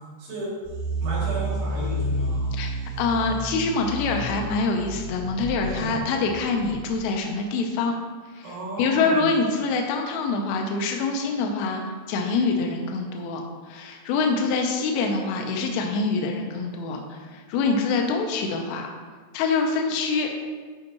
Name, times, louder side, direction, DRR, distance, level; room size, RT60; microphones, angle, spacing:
voice 1, 0.2-0.5 1.0-2.5 5.6-5.9 8.4-9.3, right 2 dB, 70° right, -7 dB, 4.7 m, -32 dB
sound 1, 0.6-7.2, right 1 dB, 50° right, 3.1 m, -31 dB
voice 2, 3.0-7.9 8.3-11.8 12.1-13.4 13.7-18.9 19.3-20.4, left 4 dB, 85° left, 2 dB, 3.3 m, -25 dB
10.5 x 5.7 x 3.0 m, 1.4 s
omnidirectional pair, 5.6 m